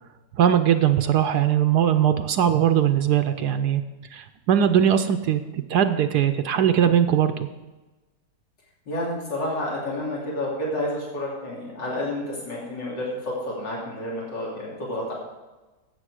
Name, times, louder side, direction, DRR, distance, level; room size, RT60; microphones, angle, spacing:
voice 1, 0.4-3.8 4.1-7.5, right 9 dB, 70° right, 9 dB, 1.1 m, -20 dB
voice 2, 8.9-15.1, left 1 dB, 85° left, -5 dB, 3.6 m, -30 dB
13.0 x 8.4 x 4.9 m, 1.2 s
omnidirectional pair, 1.9 m